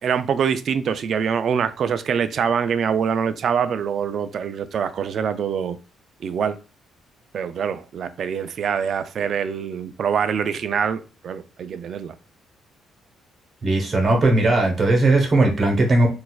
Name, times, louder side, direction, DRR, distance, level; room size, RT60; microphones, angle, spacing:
voice 1, 0.0-5.8 6.2-6.6 7.3-12.1, right 7 dB, 60° right, 0.3 m, -24 dB
voice 2, 13.6-16.1, right 2 dB, 45° right, 1.1 m, -18 dB
3.9 x 2.4 x 2.3 m
cardioid pair, 80°, 0 cm